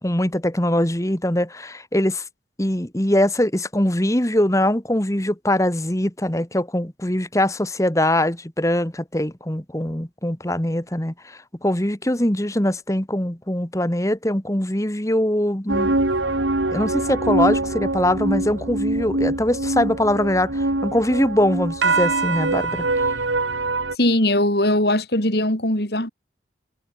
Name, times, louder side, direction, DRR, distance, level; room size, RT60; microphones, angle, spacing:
voice 1, 0.0-2.2 2.6-16.0 16.7-22.9, left 1 dB, 15° left, 1.7 m, -22 dB
sound 1, 15.7-24.0, right 2 dB, 80° right, 2.5 m, -23 dB
voice 2, 24.0-26.1, left 1 dB, 55° left, 4.9 m, -20 dB
head